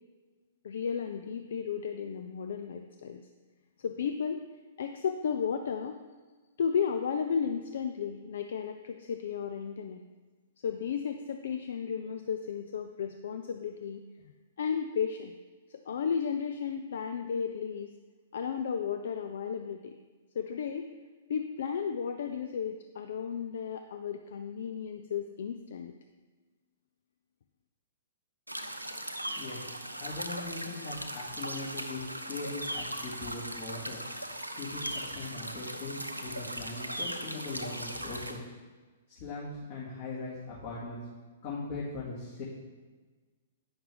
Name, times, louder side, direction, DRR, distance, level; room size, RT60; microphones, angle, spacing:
voice 1, 0.6-3.2 3.8-4.4 4.8-6.0 6.6-10.0 10.6-14.3 14.6-15.4 15.7-17.9 18.3-19.9 20.4-20.9 21.3-25.9, left 7 dB, 60° left, 6 dB, 0.4 m, -34 dB
sound 1, 28.5-38.4, right 1 dB, 90° right, 0.6 m, -38 dB
voice 2, 30.0-34.0 34.6-38.4 39.2-41.0 41.4-42.4, left 3 dB, 45° left, -9 dB, 2.2 m, -40 dB
8.8 x 5.9 x 3.4 m, 1.3 s
figure-of-eight pair, 110°, 0 cm